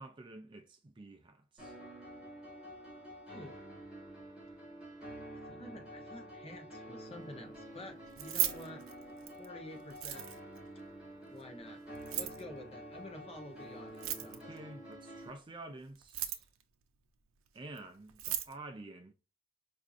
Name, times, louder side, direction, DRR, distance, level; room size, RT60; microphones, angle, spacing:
voice 1, 0.0-1.8 14.2-16.5 17.5-19.1, right 2 dB, 25° right, 0.3 m, -49 dB
sound 1, 1.6-15.3, right 1 dB, 5° right, 2.1 m, -49 dB
voice 2, 3.3-3.6 5.4-8.8 9.4-10.3 11.3-11.8 12.1-14.5, left 1 dB, 30° left, 0.8 m, -49 dB
Keys jangling, 8.1-9.5 9.9-10.6 11.9-12.4 13.9-14.6 15.9-16.6 17.8-17.9 18.1-18.5, right 12 dB, 85° right, 0.6 m, -36 dB
4.5 x 2.5 x 2.4 m
head